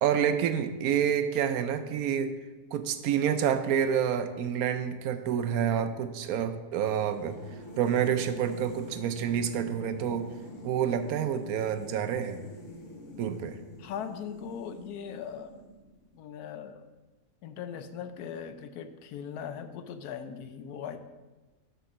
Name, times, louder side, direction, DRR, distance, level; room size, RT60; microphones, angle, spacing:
voice 1, 0.0-2.3 2.7-7.4 7.8-10.3 10.6-12.4 13.2-13.6, right 8 dB, 75° right, 10 dB, 1.0 m, -28 dB
sound 1, 6.7-16.1, left 1 dB, 50° left, 1.6 m, -46 dB
voice 2, 13.8-15.6 16.1-16.8 17.4-21.0, left 7 dB, 75° left, 10 dB, 1.1 m, -39 dB
6.7 x 5.3 x 6.1 m, 1.2 s
omnidirectional pair, 1.7 m